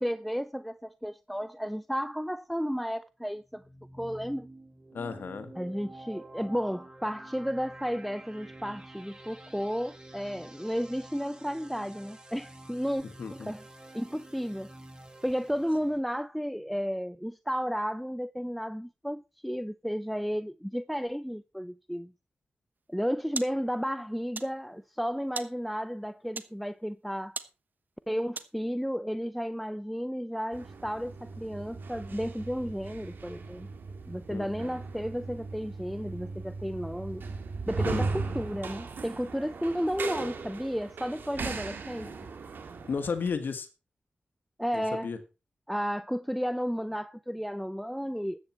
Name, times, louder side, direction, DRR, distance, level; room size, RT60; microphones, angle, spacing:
voice 1, 0.0-3.6 3.9-4.5 5.6-13.6 13.9-14.7 15.2-22.1 22.9-27.4 28.1-33.7 34.1-37.2 37.7-42.1 44.6-45.1 45.7-48.4, equal, ahead, 0.6 m, -33 dB
sound 1, 3.4-16.0, right 1 dB, 25° right, 3.3 m, -49 dB
voice 2, 4.9-5.5 13.2-13.5 34.3-34.8 37.8-38.1 42.0-42.1 42.9-43.7 44.7-45.2, left 5 dB, 75° left, 1.5 m, -34 dB
sound 2, 22.7-28.8, right 4 dB, 60° right, 1.1 m, -44 dB
sound 3, 30.5-43.3, right 4 dB, 80° right, 2.0 m, -38 dB
13.5 x 8.9 x 4.4 m
cardioid pair, 50°, 3 cm